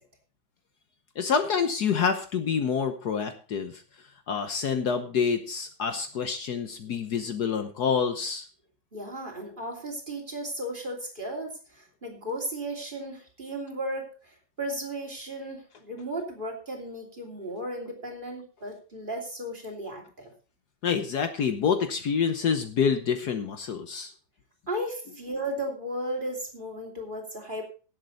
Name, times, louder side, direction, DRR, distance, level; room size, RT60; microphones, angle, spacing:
voice 1, 1.2-3.8 4.3-8.5 20.8-24.1, left 6 dB, 60° left, 8 dB, 1.4 m, -27 dB
voice 2, 8.9-20.3 24.7-27.6, right 1 dB, 25° right, 1 dB, 3.2 m, -35 dB
17.5 x 7.7 x 3.9 m, 0.36 s
omnidirectional pair, 2.0 m